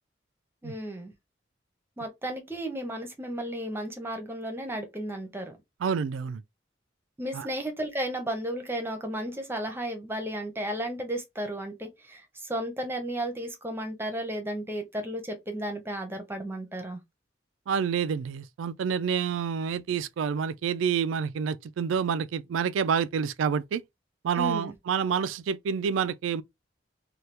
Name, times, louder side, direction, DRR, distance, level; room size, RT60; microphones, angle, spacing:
voice 1, 0.6-1.1 2.0-5.6 7.2-17.0 24.3-24.7, right 1 dB, 10° right, 0.7 m, -34 dB
voice 2, 5.8-6.4 7.3-7.5 17.7-23.8 24.2-26.4, right 7 dB, 85° right, 0.3 m, -28 dB
2.8 x 2.3 x 3.3 m
head